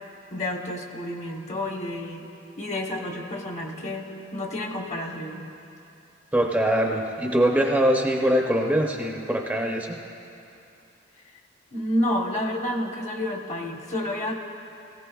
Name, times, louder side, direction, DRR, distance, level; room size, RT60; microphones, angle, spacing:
voice 1, 0.3-2.3 2.6-5.4 11.7-14.3, left 1 dB, 40° left, 2 dB, 1.0 m, -30 dB
voice 2, 6.3-10.0, right 1 dB, 10° right, 0 dB, 0.6 m, -23 dB
18.0 x 16.5 x 2.3 m, 2.7 s
head